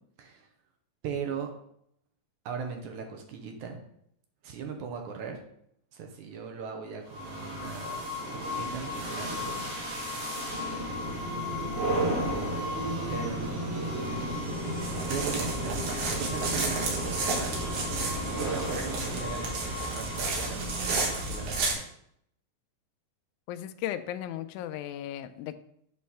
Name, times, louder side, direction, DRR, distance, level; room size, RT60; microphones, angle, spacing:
voice 1, 1.0-1.5 2.5-3.8 4.4-5.4 5.9-8.0 8.3-9.6 13.1-13.7 15.0-15.9 16.2-17.6 18.4-21.8, right 6 dB, 70° right, 3 dB, 2.1 m, -39 dB
sound 1, 7.1-21.8, equal, 55° right, 2.1 m, -33 dB
sound 2, 14.8-21.7, right 3 dB, 85° right, 3.2 m, -32 dB
voice 2, 23.5-25.5, left 12 dB, 85° left, 9 dB, 1.7 m, -36 dB
8.4 x 3.1 x 5.6 m, 0.70 s
omnidirectional pair, 4.0 m